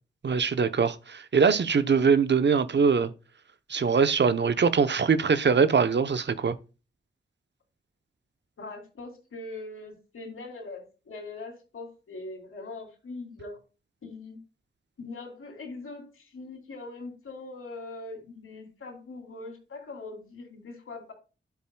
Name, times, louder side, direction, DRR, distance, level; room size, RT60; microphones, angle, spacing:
voice 1, 0.2-3.1 3.7-6.6, right 5 dB, 55° right, 0.8 m, -22 dB
voice 2, 8.6-13.6 14.0-14.4 15.0-21.1, left 3 dB, 80° left, 3.1 m, -41 dB
10.5 x 9.0 x 2.3 m
cardioid pair, 60°, 21 cm